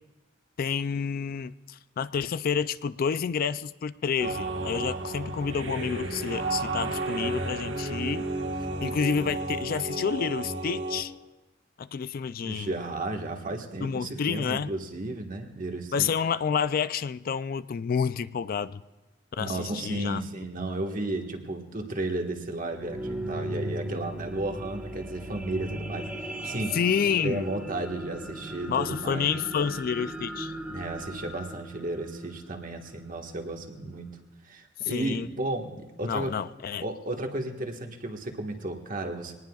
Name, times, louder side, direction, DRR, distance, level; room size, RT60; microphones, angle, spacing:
voice 1, 0.6-8.3 8.8-11.1 11.8-12.7 13.8-14.7 15.9-18.8 19.4-20.2 26.7-27.5 28.7-30.5 34.8-35.3 36.0-36.8, left 6 dB, 50° left, 15 dB, 0.4 m, -29 dB
sound 1, 4.2-11.0, right 2 dB, 75° right, 1.4 m, -32 dB
voice 2, 12.4-16.1 19.4-26.8 27.2-29.3 30.7-34.1 34.4-36.4 36.8-39.3, right 2 dB, 45° right, 3 dB, 1.5 m, -33 dB
sound 2, 22.5-33.0 33.6-33.7, right 1 dB, 5° right, 1.3 m, -37 dB
23.0 x 19.0 x 2.4 m, 1.1 s
head